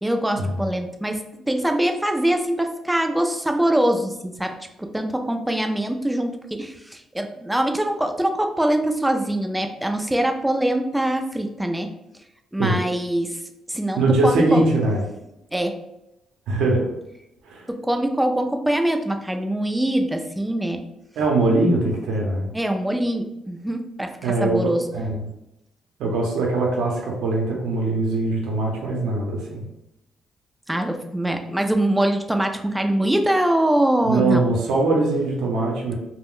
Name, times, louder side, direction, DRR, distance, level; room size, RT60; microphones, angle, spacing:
voice 1, 0.0-11.9 12.5-13.4 13.7-14.6 15.5-15.8 17.7-20.8 22.5-24.9 30.7-34.4, right 1 dB, 5° right, 4 dB, 0.3 m, -23 dB
voice 2, 14.0-15.1 16.5-16.9 17.5-17.7 21.2-22.5 24.2-25.2 26.0-29.7 34.0-35.9, right 2 dB, 80° right, -1 dB, 0.6 m, -21 dB
2.4 x 2.0 x 3.6 m, 0.87 s
cardioid pair, 90°, 0 cm